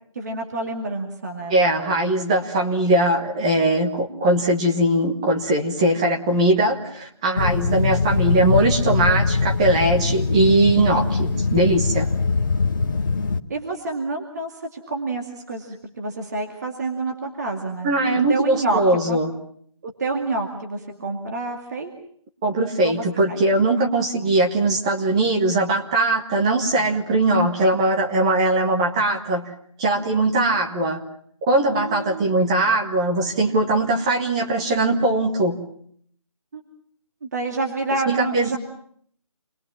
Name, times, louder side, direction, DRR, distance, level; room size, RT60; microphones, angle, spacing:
voice 1, 0.1-2.0 13.5-17.9 18.3-19.2 19.8-21.9 22.8-23.4 24.2-24.3 31.6-32.4 36.5-36.6 37.2-38.6, right 2 dB, 30° right, 2 dB, 2.4 m, -28 dB
voice 2, 1.5-12.1 17.8-19.3 22.4-29.5 29.8-31.0 31.5-35.6 38.1-38.6, right 2 dB, 10° right, 3 dB, 1.3 m, -20 dB
sound 1, 7.4-13.4, left 4 dB, 35° left, 1.2 m, -22 dB
29.0 x 21.5 x 7.4 m, 0.64 s
figure-of-eight pair, 175°, 17 cm